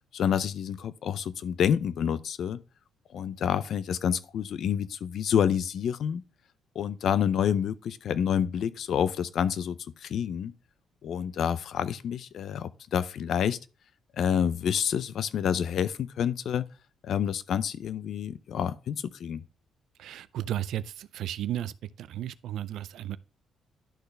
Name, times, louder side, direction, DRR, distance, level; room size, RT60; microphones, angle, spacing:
voice 1, 0.1-2.6 3.1-6.2 6.8-10.5 11.0-13.6 14.2-16.7 17.0-19.4, left 8 dB, 65° left, 0.5 m, -28 dB
voice 2, 20.0-23.2, right 12 dB, 80° right, 0.4 m, -34 dB
11.5 x 4.1 x 3.3 m
cardioid pair, 90°, 0 cm